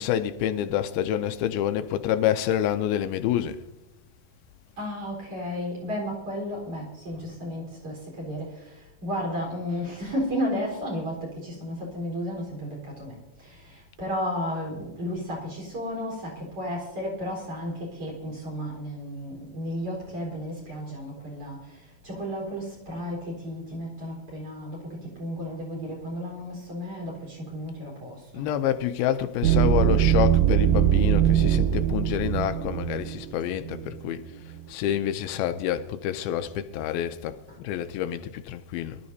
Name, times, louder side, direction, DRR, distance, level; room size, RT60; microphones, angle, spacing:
voice 1, 0.0-3.6 28.3-34.2 34.7-39.0, left 11 dB, 85° left, 2.5 m, -27 dB
voice 2, 4.8-28.5 37.5-37.6, equal, 40° right, 5.0 m, -33 dB
sound 1, 29.4-34.0, right 11 dB, 85° right, 1.9 m, -22 dB
23.5 x 12.5 x 2.7 m
omnidirectional pair, 4.3 m